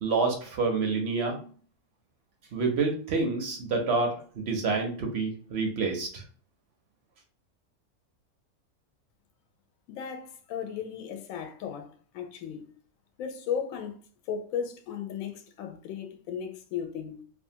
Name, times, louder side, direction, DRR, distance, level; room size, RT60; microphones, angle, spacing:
voice 1, 0.0-1.4 2.5-6.2, right 4 dB, 65° right, 0.7 m, -28 dB
voice 2, 9.9-12.7 13.2-17.2, left 7 dB, 75° left, 1.0 m, -36 dB
2.5 x 2.4 x 2.7 m
omnidirectional pair, 1.5 m